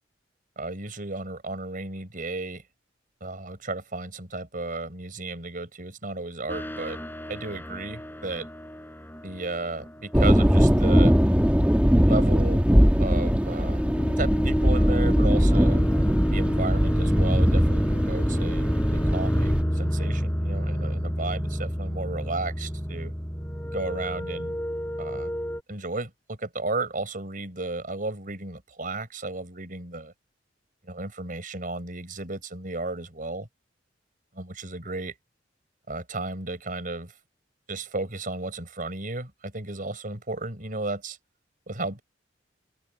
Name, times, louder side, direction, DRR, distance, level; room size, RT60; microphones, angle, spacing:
voice 1, 0.6-2.6 3.2-7.0 7.3-8.5 9.2-11.1 12.1-12.6 13.0-13.8 14.2-15.9 16.3-23.1 23.7-24.6 25.0-25.4 25.7-30.1 30.8-33.5 34.3-35.1 35.9-37.1 37.7-41.2 41.7-42.0, right 2 dB, 45° right, 5.0 m, -34 dB
sound 1, 6.5-12.4 13.5-25.6, equal, 10° left, 7.5 m, -30 dB
sound 2, 10.1-19.6, equal, 5° right, 1.2 m, -21 dB
open air
head